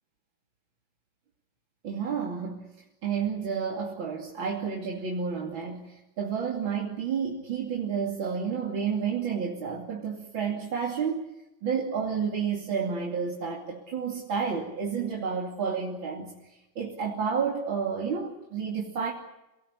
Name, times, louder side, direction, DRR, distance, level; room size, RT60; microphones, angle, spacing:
voice 1, 1.8-2.7 3.0-11.2 11.6-19.1, right 6 dB, 80° right, -1 dB, 3.5 m, -30 dB
29.0 x 19.0 x 8.3 m, 0.98 s
omnidirectional pair, 2.1 m